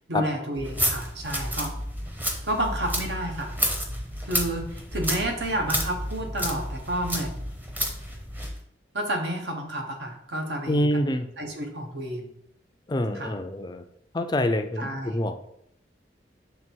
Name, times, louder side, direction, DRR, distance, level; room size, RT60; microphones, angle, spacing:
voice 1, 0.1-1.7 2.4-3.5 4.2-7.4 8.9-10.9 11.4-12.3 13.1-13.3 14.8-15.2, right 1 dB, 65° right, 3 dB, 1.1 m, -30 dB
sound 1, 0.6-8.6, equal, 10° right, 0.8 m, -31 dB
voice 2, 10.7-11.3 12.9-13.8 14.1-15.5, left 1 dB, 25° left, 7 dB, 0.4 m, -26 dB
6.1 x 3.4 x 4.5 m, 0.74 s
head